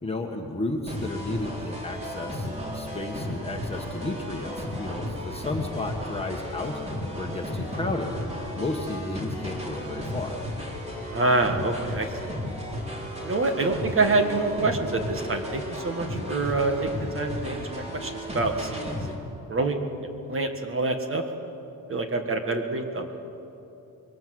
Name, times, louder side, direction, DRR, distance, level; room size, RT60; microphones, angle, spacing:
voice 1, 0.0-2.5 2.7-8.2 8.6-10.5, left 2 dB, 15° left, 1 dB, 1.5 m, -33 dB
sound 1, 0.9-19.1, left 1 dB, 20° right, 3.9 m, -34 dB
voice 2, 11.1-12.3 13.2-19.2 19.5-21.2 21.9-23.1, right 3 dB, 35° right, 5 dB, 1.7 m, -26 dB
25.5 x 22.5 x 7.8 m, 2.9 s
wide cardioid pair, 175°, 35 cm